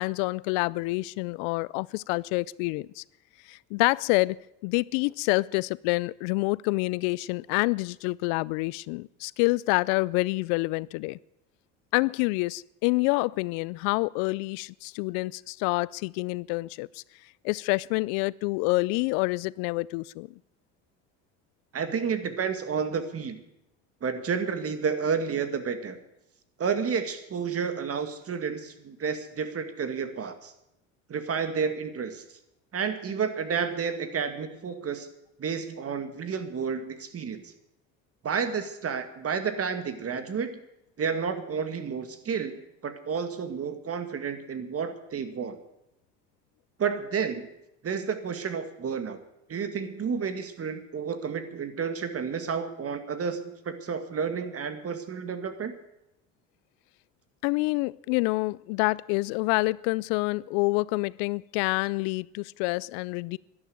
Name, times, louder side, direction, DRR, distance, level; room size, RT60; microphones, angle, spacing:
voice 1, 0.0-3.0 3.5-4.4 4.6-11.2 11.9-17.0 17.4-20.3 57.4-63.4, left 24 dB, 75° left, 0.5 m, -27 dB
voice 2, 21.7-23.4 24.0-26.0 26.6-30.5 31.1-32.2 32.7-35.1 35.4-37.5 38.2-40.6 41.0-45.6 46.8-47.5 47.8-49.2 49.5-55.8, right 6 dB, 40° right, 2.1 m, -31 dB
12.0 x 11.0 x 9.4 m
supercardioid pair, 85°, 37 cm